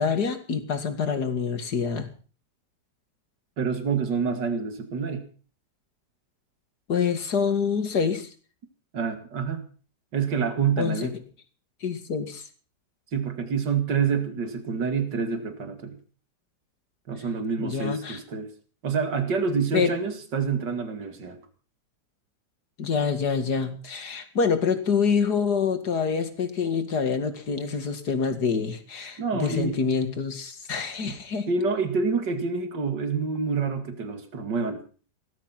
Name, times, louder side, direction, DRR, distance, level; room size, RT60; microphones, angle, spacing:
voice 1, 0.0-2.1 6.9-8.3 10.8-11.1 11.8-12.5 17.6-18.2 19.7-19.9 22.8-31.5, left 6 dB, 65° left, 9 dB, 2.7 m, -26 dB
voice 2, 3.6-5.2 8.9-9.6 10.1-11.1 13.1-16.0 17.1-18.5 18.8-21.4 29.2-30.0 31.0-31.1 31.5-34.8, right 5 dB, 80° right, 8 dB, 2.9 m, -27 dB
18.5 x 13.0 x 5.9 m, 0.40 s
omnidirectional pair, 1.9 m